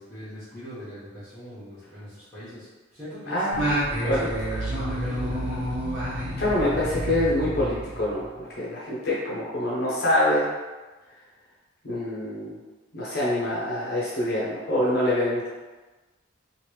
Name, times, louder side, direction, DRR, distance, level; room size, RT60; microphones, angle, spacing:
voice 1, 0.0-3.5 4.0-5.7, equal, 15° left, -14 dB, 1.1 m, -41 dB
voice 2, 3.3-3.7 4.1-4.2 4.5-4.6 6.4-10.5 11.8-12.6 12.9-15.5, left 1 dB, 55° left, -7 dB, 0.7 m, -25 dB
Singing, 3.5-8.3, equal, 80° right, 1.0 m, -29 dB
3.0 x 2.5 x 3.1 m, 1.2 s
head